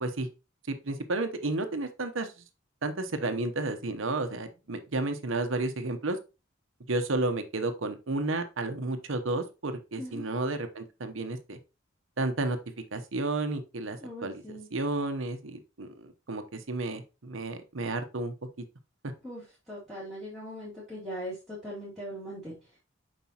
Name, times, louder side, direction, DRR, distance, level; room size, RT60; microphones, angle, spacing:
voice 1, 0.7-2.3 2.8-6.2 6.9-11.6 12.2-12.6 12.9-18.6, right 2 dB, 75° right, 8 dB, 0.9 m, -32 dB
voice 2, 14.0-14.7 19.2-22.5, equal, ahead, -11 dB, 2.4 m, -40 dB
7.1 x 5.2 x 2.9 m, 0.29 s
head